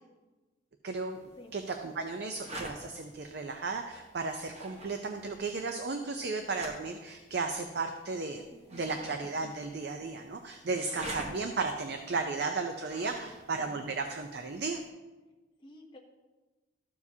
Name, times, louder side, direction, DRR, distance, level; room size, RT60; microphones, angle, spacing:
voice 1, 0.8-1.2 1.5-14.8, right 4 dB, 60° right, 6 dB, 0.5 m, -35 dB
sound 1, 1.1-14.9, right 1 dB, 35° right, 1.1 m, -49 dB
voice 2, 8.5-9.0 13.1-13.5 15.6-16.0, left 2 dB, 25° left, -1 dB, 0.9 m, -52 dB
13.5 x 7.2 x 2.7 m, 1.2 s
head